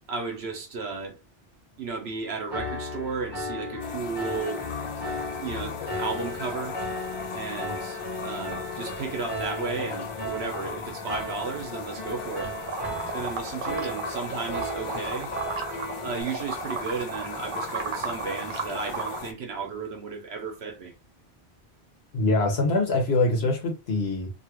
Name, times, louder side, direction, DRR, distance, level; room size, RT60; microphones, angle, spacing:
voice 1, 0.1-1.2 1.8-4.6 5.4-6.8 7.3-12.5 13.1-15.3 16.0-20.9, right 4 dB, 75° right, 1.1 m, -34 dB
Piano, 2.5-16.2, left 1 dB, 25° left, 0.9 m, -36 dB
sound 1, 3.8-19.3, left 5 dB, 55° left, 0.3 m, -38 dB
sound 2, 12.7-16.0 16.3-19.2, right 5 dB, 60° right, 0.7 m, -34 dB
voice 2, 22.1-24.3, left 2 dB, 75° left, 1.2 m, -24 dB
2.8 x 2.4 x 2.9 m
omnidirectional pair, 1.1 m